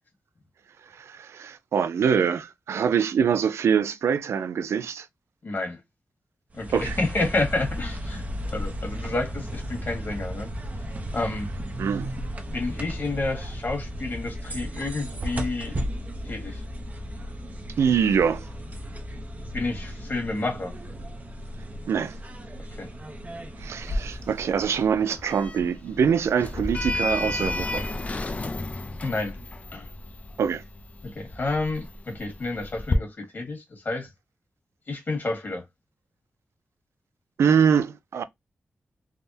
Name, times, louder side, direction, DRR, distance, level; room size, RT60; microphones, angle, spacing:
voice 1, 0.9-5.1 6.7-7.0 11.8-12.1 17.8-18.5 21.9-22.2 23.6-27.9 30.4-30.6 37.4-38.2, right 7 dB, 85° right, 0.3 m, -24 dB
voice 2, 5.4-5.8 6.5-8.2 8.5-10.5 11.1-11.5 12.5-15.7 16.2-16.6 19.5-20.7 22.8-22.9 29.0-29.4 29.7-29.9 31.1-34.1 34.9-35.6, left 2 dB, 50° left, 1.5 m, -30 dB
sound 1, 6.5-25.0, equal, 35° right, 0.6 m, -35 dB
Sliding door, 23.8-33.0, left 2 dB, 30° left, 0.4 m, -33 dB
3.5 x 2.1 x 2.6 m
cardioid pair, 80°, 5 cm